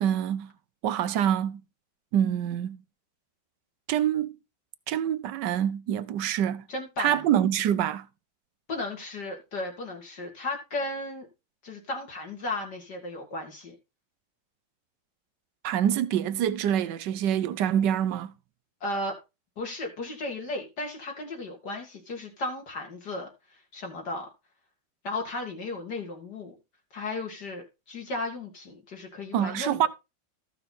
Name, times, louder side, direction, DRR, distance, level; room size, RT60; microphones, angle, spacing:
voice 1, 0.0-0.5 0.8-1.6 2.1-2.8 3.9-4.3 4.9-6.7 7.0-8.1 15.6-18.3 29.3-29.9, right 10 dB, 70° right, 1.2 m, -26 dB
voice 2, 6.7-7.3 8.7-11.3 11.6-13.7 18.8-19.2 19.6-23.3 23.7-24.3 25.0-26.5 26.9-29.9, left 2 dB, 55° left, 2.7 m, -35 dB
14.0 x 5.8 x 4.2 m
omnidirectional pair, 2.2 m